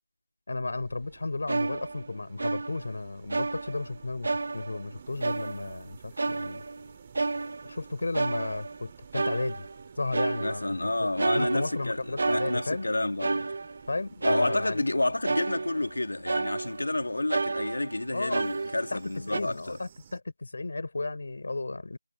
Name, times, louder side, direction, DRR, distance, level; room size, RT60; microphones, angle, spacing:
voice 1, 0.5-6.6 7.7-9.7 10.0-12.9 13.9-14.8 18.1-19.0 19.3-22.0, left 3 dB, 40° left, 3.6 m, -34 dB
sound 1, 0.6-20.2, right 8 dB, 15° right, 2.6 m, -54 dB
sound 2, 1.5-3.0 3.3-4.0 4.2-4.9 5.2-5.8 6.2-7.8 8.1-8.9 9.1-9.8 10.1-10.8 11.2-12.9 13.2-13.9 14.2-14.9 15.2-16.0 16.3-17.0 17.3-19.0 19.3-19.4, right 3 dB, 35° right, 0.5 m, -31 dB
voice 2, 10.4-13.5 14.2-19.8, left 2 dB, 80° left, 2.3 m, -30 dB
figure-of-eight pair, 180°, 0 cm